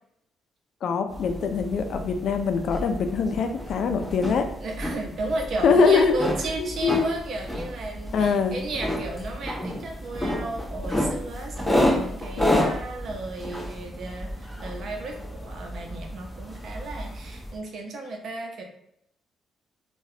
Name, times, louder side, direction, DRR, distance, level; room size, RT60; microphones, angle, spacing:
voice 1, 0.8-4.4 5.6-6.2 6.8-7.1 8.1-8.6, left 5 dB, 70° left, 6 dB, 0.4 m, -23 dB
sound 1, 1.1-17.6, left 1 dB, 5° left, 1.2 m, -30 dB
voice 2, 4.6-18.6, right 2 dB, 60° right, 2 dB, 0.7 m, -34 dB
3.9 x 2.3 x 2.7 m, 0.76 s
cardioid pair, 90°, 0 cm